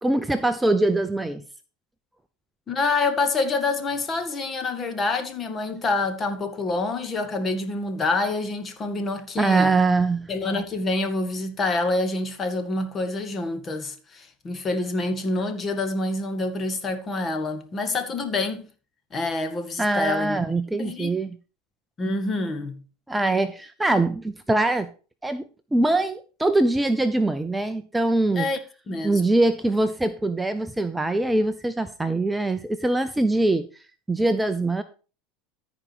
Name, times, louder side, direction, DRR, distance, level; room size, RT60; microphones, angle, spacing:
voice 1, 0.0-1.4 9.4-10.3 19.8-21.4 23.1-24.9 25.2-25.4 25.7-28.5 29.0-33.7 34.1-34.8, right 2 dB, 10° right, 0.6 m, -23 dB
voice 2, 2.7-9.7 10.3-18.7 19.1-20.4 20.8-21.2 22.0-22.8 28.3-28.6 28.9-29.2, left 3 dB, 30° left, 1.9 m, -27 dB
14.0 x 5.1 x 4.6 m
hypercardioid pair, 95°, 0 cm